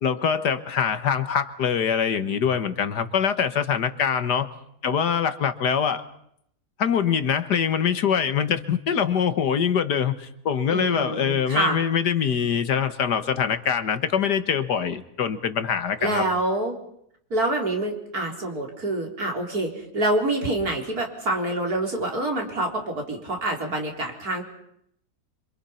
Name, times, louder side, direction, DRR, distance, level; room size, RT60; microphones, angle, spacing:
voice 1, 0.0-4.5 4.8-6.0 6.8-16.3, left 7 dB, 70° left, 10 dB, 1.9 m, -24 dB
voice 2, 10.7-11.8 16.0-16.7 17.3-24.4, right 2 dB, 60° right, 1 dB, 4.7 m, -26 dB
27.0 x 26.5 x 5.8 m, 0.73 s
omnidirectional pair, 1.8 m